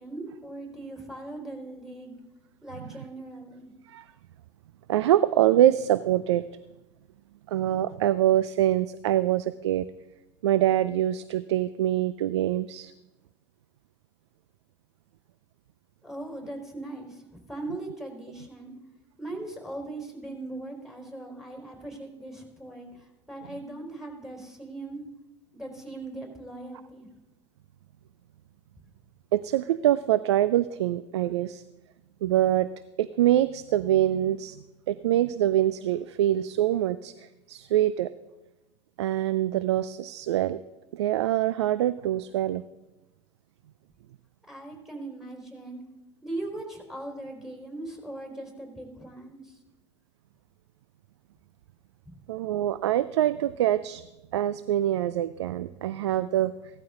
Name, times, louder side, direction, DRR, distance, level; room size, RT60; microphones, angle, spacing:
voice 1, 0.0-2.2 2.6-3.7 16.0-18.7 19.2-22.9 23.3-25.0 25.5-27.1 44.5-45.8 46.2-49.5 52.1-52.2, right 2 dB, 5° right, 2 dB, 3.9 m, -39 dB
voice 2, 4.9-6.4 7.5-9.9 10.4-12.9 29.3-31.6 32.2-32.7 33.0-34.6 34.9-37.1 37.5-38.1 39.0-40.6 40.9-42.6 52.3-54.0 54.3-56.5, right 12 dB, 70° right, 16 dB, 0.4 m, -24 dB
16.5 x 12.5 x 3.7 m, 1.0 s
figure-of-eight pair, 75°, 15 cm